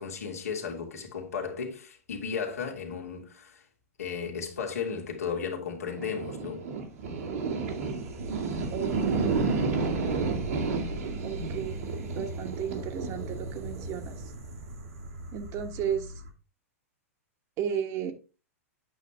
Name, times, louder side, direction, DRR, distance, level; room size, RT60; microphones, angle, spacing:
voice 1, 0.0-3.6 4.0-6.7, left 6 dB, 85° left, 2.1 m, -35 dB
sound 1, 5.9-16.3, right 4 dB, 75° right, 2.0 m, -32 dB
voice 2, 8.7-9.9 11.2-14.3 15.3-16.2 17.6-18.1, right 8 dB, 40° right, 1.2 m, -34 dB
8.3 x 5.8 x 3.3 m
hypercardioid pair, 115°, 8 cm